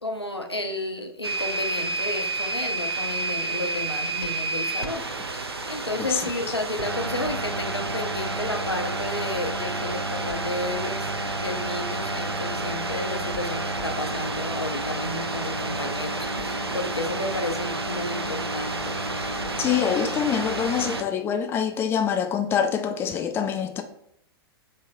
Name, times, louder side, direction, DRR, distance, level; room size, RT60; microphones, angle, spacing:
voice 1, 0.0-5.1 5.3-11.1 11.3-18.9, left 2 dB, 90° left, 0.6 m, -32 dB
sound 1, 1.2-21.0, right 2 dB, 80° right, 0.5 m, -30 dB
voice 2, 6.0-6.3 19.6-23.8, left 8 dB, 15° left, 0.4 m, -25 dB
5.4 x 3.3 x 2.6 m
figure-of-eight pair, 105°, 13 cm